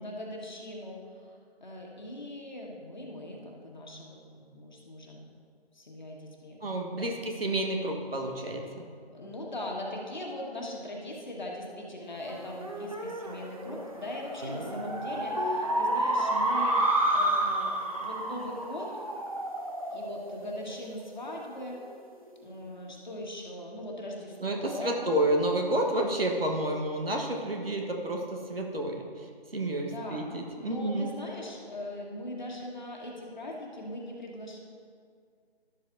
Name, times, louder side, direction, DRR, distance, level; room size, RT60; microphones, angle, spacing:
voice 1, 0.0-5.3 5.7-6.6 6.9-7.2 9.1-18.9 19.9-21.8 22.4-24.9 29.8-30.3 30.6-34.6, left 1 dB, 45° left, -2 dB, 1.6 m, -40 dB
voice 2, 6.6-8.6 24.4-29.3 29.5-31.1, right 1 dB, 65° right, 1 dB, 1.3 m, -30 dB
sound 1, 12.3-21.1, right 1 dB, 35° right, 0.6 m, -30 dB
12.0 x 7.4 x 2.7 m, 2.2 s
figure-of-eight pair, 165°, 32 cm